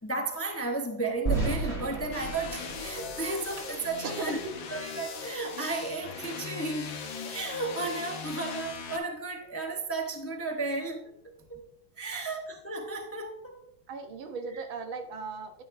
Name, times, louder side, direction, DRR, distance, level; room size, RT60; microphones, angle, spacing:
voice 1, 0.0-4.4 4.7-6.9 7.2-11.1 11.5-11.6 12.0-13.6, right 3 dB, 20° left, 0.4 m, -33 dB
sound 1, 1.3-4.2, right 4 dB, 15° right, 2.7 m, -33 dB
sound 2, 2.1-9.0, left 5 dB, 75° left, 1.9 m, -39 dB
voice 2, 4.0-4.5 12.1-12.4 13.9-15.6, right 3 dB, 85° right, 2.0 m, -38 dB
11.0 x 10.5 x 2.6 m
omnidirectional pair, 2.1 m